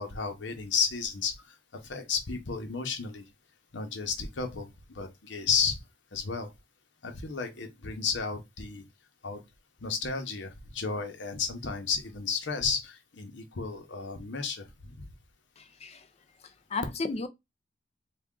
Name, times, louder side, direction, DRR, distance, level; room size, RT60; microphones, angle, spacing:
voice 1, 0.0-1.6 1.8-3.2 3.7-5.8 6.1-6.5 7.0-8.8 9.2-9.4 9.8-15.1, left 5 dB, 80° left, 0.9 m, -32 dB
voice 2, 15.6-16.0 16.7-17.3, left 3 dB, 35° left, 0.5 m, -33 dB
3.5 x 2.4 x 3.6 m
head